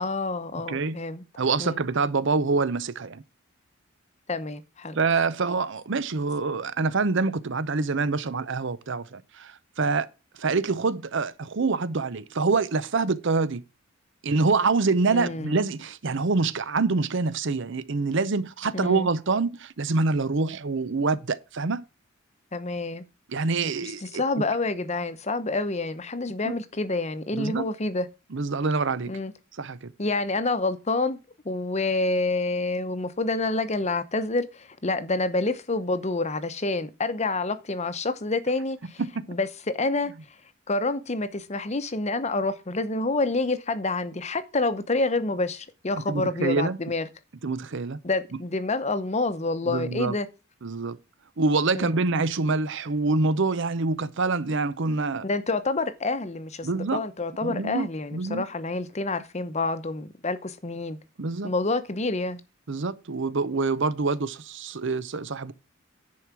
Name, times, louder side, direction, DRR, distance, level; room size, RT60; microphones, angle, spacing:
voice 1, 0.0-1.2 1.6-1.8 4.3-5.0 15.1-15.6 18.7-19.1 22.5-23.1 23.8-28.1 29.1-29.3 30.0-31.2 31.4-39.0 39.3-40.1 40.7-47.1 48.0-50.3 51.7-51.9 55.2-61.0 61.4-62.4, left 3 dB, 30° left, 0.8 m, -28 dB
voice 2, 0.5-1.0 1.4-3.2 4.9-10.1 10.4-13.6 14.2-21.8 23.3-24.2 26.4-26.5 27.3-27.7 28.3-29.1 29.6-29.9 39.0-39.3 46.1-46.8 47.4-48.0 49.7-50.1 50.6-51.0 51.4-55.2 56.6-57.0 57.4-58.4 61.2-61.5 62.7-65.5, right 3 dB, 60° right, 0.7 m, -26 dB
10.5 x 4.7 x 6.0 m
head